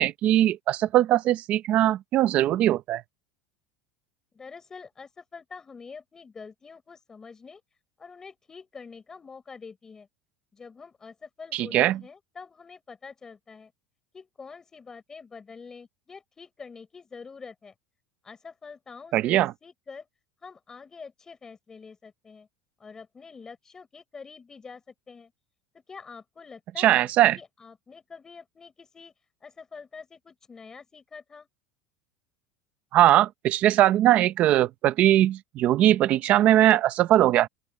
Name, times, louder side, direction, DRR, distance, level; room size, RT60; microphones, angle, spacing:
voice 1, 0.0-3.0 11.5-12.0 19.1-19.5 26.8-27.4 32.9-37.5, right 13 dB, 35° right, 0.7 m, -20 dB
voice 2, 4.3-7.6 8.0-10.1 10.5-13.7 14.1-17.7 18.2-20.1 20.4-22.5 22.8-25.3 25.9-29.1 29.4-31.5, left 5 dB, 15° left, 6.1 m, -46 dB
open air
cardioid pair, 170°, 4 cm